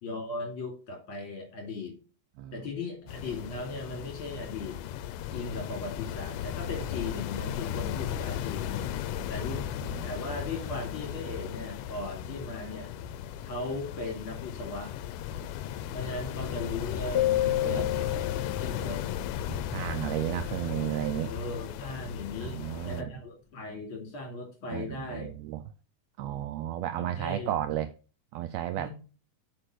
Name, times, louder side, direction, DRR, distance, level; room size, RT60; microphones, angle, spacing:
voice 1, 0.0-2.0 2.5-4.8 5.3-8.9 9.3-9.7 10.0-12.9 13.4-14.9 15.9-18.3 18.6-19.2 21.3-25.3 27.0-27.5 28.8-28.9, left 3 dB, 45° left, 3.5 m, -38 dB
voice 2, 2.4-2.7 9.8-10.1 17.6-17.9 19.5-21.3 22.4-23.1 24.7-25.6 26.2-27.9 28.3-28.9, right 12 dB, 85° right, 1.5 m, -33 dB
sound 1, 3.1-23.0, left 10 dB, 90° left, 2.2 m, -36 dB
sound 2, 17.1-19.4, left 14 dB, 65° left, 1.4 m, -29 dB
7.8 x 5.0 x 6.1 m
omnidirectional pair, 3.6 m